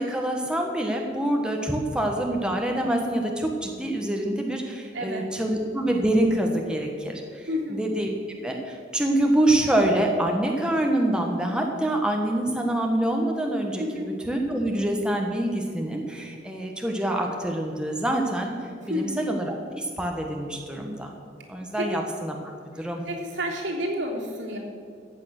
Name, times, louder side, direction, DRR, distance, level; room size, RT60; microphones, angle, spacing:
voice 1, 0.0-8.1 8.4-18.5 18.9-21.1 21.5-22.4 22.8-23.0, right 1 dB, 5° right, 1 dB, 1.2 m, -26 dB
voice 2, 4.9-5.4 7.5-7.8 13.8-14.1 18.9-19.2 21.8-22.0 23.1-24.6, equal, 80° right, -3 dB, 3.4 m, -30 dB
15.0 x 8.8 x 6.5 m, 2.3 s
head